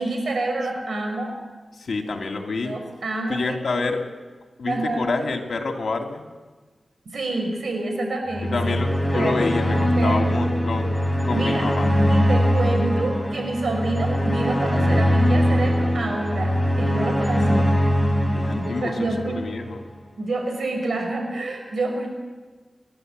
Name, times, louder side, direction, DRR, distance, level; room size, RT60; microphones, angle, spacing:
voice 1, 0.0-1.3 2.6-3.8 4.7-5.1 7.1-8.8 9.1-9.3 10.0-10.5 11.3-11.7 12.1-17.7 18.6-19.4 20.2-22.1, right 2 dB, 80° right, 3 dB, 5.7 m, -27 dB
voice 2, 1.7-2.8 3.3-4.0 4.6-6.2 8.4-11.0 11.2-11.9 18.3-19.1 19.3-19.8, left 3 dB, 75° left, 3 dB, 2.8 m, -27 dB
sound 1, 8.3-19.7, equal, 10° right, 4.0 m, -22 dB
28.5 x 12.0 x 8.1 m, 1.4 s
wide cardioid pair, 80°, 0 cm